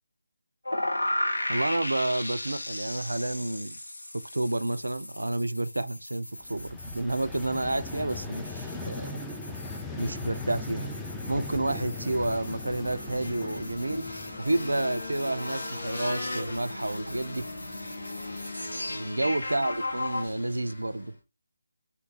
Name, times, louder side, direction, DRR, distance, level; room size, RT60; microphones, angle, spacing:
sound 1, 0.7-20.3, left 1 dB, 75° left, 0.9 m, -37 dB
voice 1, 1.5-3.8 4.3-9.2 10.0-10.9 11.3-14.0 14.4-17.5 18.9-21.2, right 2 dB, 80° right, 0.4 m, -30 dB
Vehicle, 6.4-15.3, left 3 dB, 5° left, 0.5 m, -39 dB
sound 2, 11.3-21.2, left 2 dB, 60° left, 1.4 m, -39 dB
3.8 x 2.7 x 3.7 m
figure-of-eight pair, 155°, 0 cm